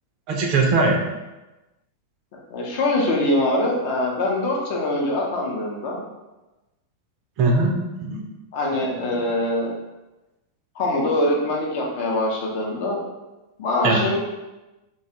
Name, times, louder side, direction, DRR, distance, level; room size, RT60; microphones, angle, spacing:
voice 1, 0.3-1.0 7.4-8.2 8.9-9.2 13.8-14.0, right 3 dB, 40° right, 1 dB, 0.4 m, -21 dB
voice 2, 2.5-6.0 8.5-9.7 10.7-13.0 13.6-14.2, left 1 dB, 50° left, -2 dB, 0.6 m, -23 dB
2.3 x 2.3 x 2.8 m, 1.1 s
figure-of-eight pair, 90°, 0 cm